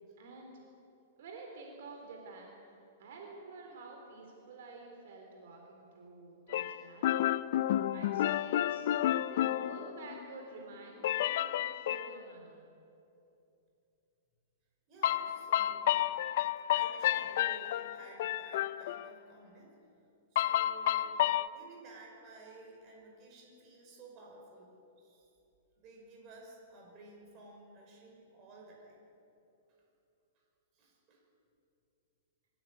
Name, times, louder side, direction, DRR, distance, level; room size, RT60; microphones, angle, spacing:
voice 1, 0.2-0.6 1.2-2.7 3.0-7.3 7.8-12.7, right 3 dB, 60° right, 1 dB, 3.7 m, -50 dB
sound 1, 6.5-10.4 11.0-12.2 15.0-19.1 20.4-21.5, left 12 dB, 50° left, 0.5 m, -31 dB
voice 2, 14.9-16.0 16.7-19.7 20.3-21.1 21.5-25.3 25.8-29.0 30.7-31.2, right 2 dB, 30° right, -1 dB, 5.8 m, -54 dB
23.0 x 16.0 x 8.7 m, 2.8 s
hypercardioid pair, 165°, 0 cm